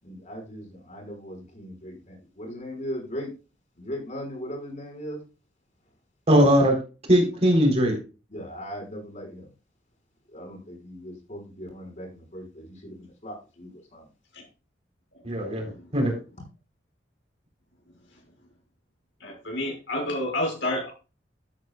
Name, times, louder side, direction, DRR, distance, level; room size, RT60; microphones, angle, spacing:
voice 1, 0.0-3.3 3.8-5.2 8.3-9.5 10.3-14.1, equal, 40° left, 0 dB, 5.8 m, -38 dB
voice 2, 6.3-6.8 7.1-8.0 15.2-16.1, equal, 35° right, 1 dB, 4.0 m, -20 dB
voice 3, 15.1-15.9 18.1-18.2 19.2-20.9, left 1 dB, 75° left, 0 dB, 6.3 m, -31 dB
13.0 x 9.1 x 2.4 m, 0.31 s
head